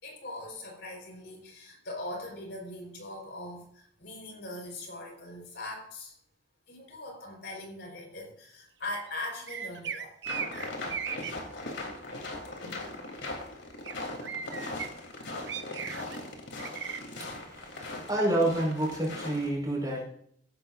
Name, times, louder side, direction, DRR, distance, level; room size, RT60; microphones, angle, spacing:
voice 1, 0.0-6.2 6.7-10.2 10.6-10.7, left 1 dB, 60° left, 1 dB, 4.7 m, -41 dB
sound 1, 9.5-11.3 13.8-13.9 14.2-14.9 15.5-16.2 16.6-17.0, right 7 dB, 70° right, 1.0 m, -36 dB
sound 2, 10.2-19.5, left 2 dB, 75° left, 3.4 m, -39 dB
voice 2, 17.5-20.0, right 1 dB, 20° right, -2 dB, 4.9 m, -29 dB
16.5 x 12.5 x 2.6 m, 0.66 s
head